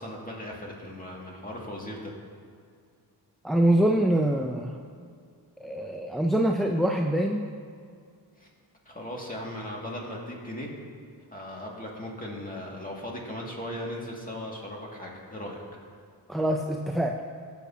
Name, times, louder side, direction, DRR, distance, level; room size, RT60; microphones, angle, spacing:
voice 1, 0.0-2.1 8.4-8.5 8.9-10.7 11.3-15.6, left 1 dB, 20° left, -3 dB, 2.1 m, -37 dB
voice 2, 3.4-4.7 5.6-7.4 16.3-17.2, right 1 dB, ahead, 1 dB, 0.4 m, -24 dB
18.5 x 7.0 x 2.8 m, 2.2 s
cardioid pair, 85°, 43 cm